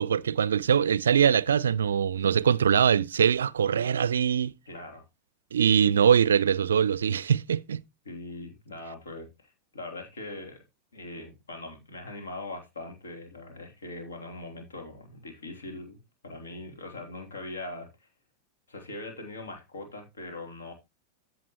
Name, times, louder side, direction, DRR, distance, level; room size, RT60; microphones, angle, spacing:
voice 1, 0.0-4.5 5.5-7.8, right 8 dB, 65° right, 0.4 m, -23 dB
voice 2, 4.7-5.0 8.0-10.6 10.9-18.1 18.7-20.7, left 2 dB, 70° left, 3.2 m, -41 dB
14.5 x 6.0 x 3.1 m
figure-of-eight pair, 90°, 0 cm